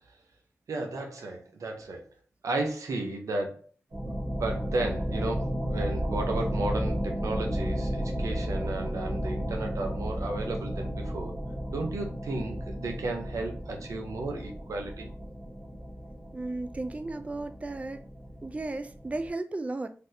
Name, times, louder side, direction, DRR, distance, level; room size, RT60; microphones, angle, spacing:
voice 1, 0.7-2.1 2.4-3.7 4.0-11.3 11.7-15.1, right 2 dB, 85° right, 0.6 m, -34 dB
sound 1, 3.9-19.3, equal, 55° right, 1.3 m, -33 dB
voice 2, 16.3-18.0 18.4-19.9, right 2 dB, 25° right, 0.3 m, -34 dB
3.4 x 2.4 x 2.7 m
cardioid pair, 45°, 5 cm